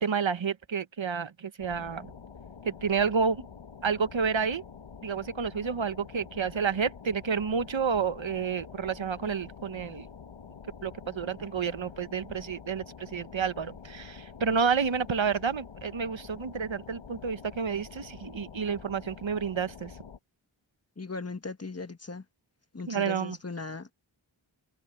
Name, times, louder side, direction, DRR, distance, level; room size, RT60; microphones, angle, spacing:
voice 1, 0.0-2.1 2.6-3.5 3.8-4.6 5.0-10.1 10.8-19.9 22.9-23.4, right 6 dB, 70° right, 1.1 m, -30 dB
sound 1, 1.6-20.2, left 6 dB, 80° left, 1.3 m, -47 dB
voice 2, 21.0-22.2 22.7-23.9, left 3 dB, 30° left, 1.5 m, -38 dB
wide cardioid pair, 50°, 48 cm